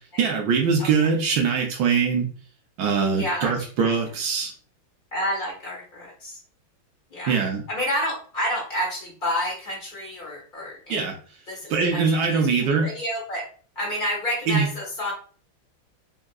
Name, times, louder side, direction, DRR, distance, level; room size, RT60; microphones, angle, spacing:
voice 1, 0.2-2.3 2.8-4.5 7.3-7.6 10.9-11.2 11.7-12.9 14.5-14.7, right 5 dB, 90° right, 1 dB, 0.8 m, -22 dB
voice 2, 3.2-3.5 3.8-3.9 5.1-6.4 7.1-7.4 7.7-11.0 11.5-12.4 12.7-13.4 13.7-15.1, equal, 30° left, -5 dB, 1.2 m, -29 dB
3.6 x 2.3 x 2.2 m, 0.43 s
omnidirectional pair, 2.3 m